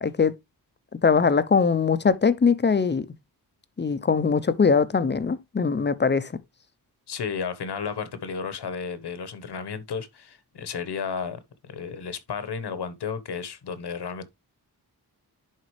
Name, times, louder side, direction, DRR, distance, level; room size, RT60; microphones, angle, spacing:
voice 1, 0.0-0.3 0.9-3.1 3.8-6.3, left 5 dB, 25° left, 0.6 m, -21 dB
voice 2, 7.1-14.2, left 6 dB, 75° left, 1.2 m, -33 dB
11.0 x 4.1 x 3.2 m
wide cardioid pair, 145°, 40 cm